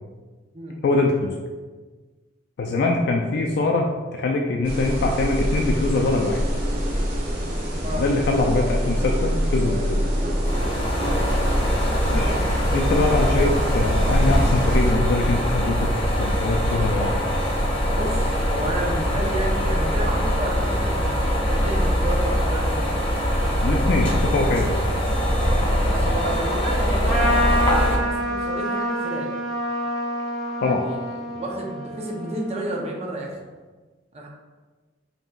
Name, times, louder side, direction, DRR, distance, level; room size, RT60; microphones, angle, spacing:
voice 1, 0.8-1.3 2.6-6.4 8.0-10.1 12.1-12.3 12.7-15.9 16.2-17.1 23.6-24.8 30.6-30.8, left 3 dB, 60° left, 2 dB, 0.3 m, -23 dB
sound 1, 4.6-14.9, equal, 55° right, 0.9 m, -25 dB
sound 2, 10.4-28.0, equal, 30° left, 1.0 m, -22 dB
voice 2, 17.9-22.8 25.8-29.3 30.6-33.4 34.1-34.3, right 1 dB, 35° right, -1 dB, 0.7 m, -31 dB
Trumpet, 27.0-32.9, equal, ahead, 0.9 m, -27 dB
5.2 x 2.9 x 2.4 m, 1.3 s
head